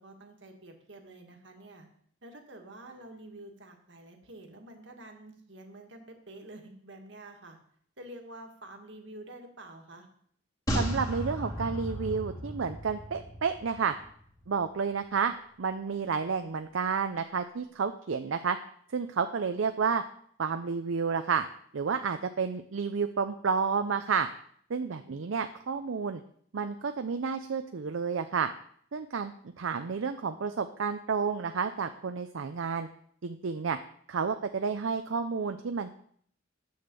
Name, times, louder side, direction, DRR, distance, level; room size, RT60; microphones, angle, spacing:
voice 1, 0.0-1.9 2.2-7.6 8.0-10.1 24.8-25.2, right 1 dB, 65° right, 3 dB, 1.7 m, -48 dB
sound 1, 10.7-14.1 14.4-14.5, equal, 20° left, 1.9 m, -34 dB
voice 2, 10.7-13.9 14.5-15.3 15.6-18.6 18.9-20.0 20.4-21.4 21.7-24.3 24.7-26.2 26.5-28.5 28.9-32.9 33.2-33.8 34.1-35.9, right 5 dB, 80° right, 8 dB, 0.5 m, -30 dB
7.9 x 6.6 x 6.8 m, 0.63 s
head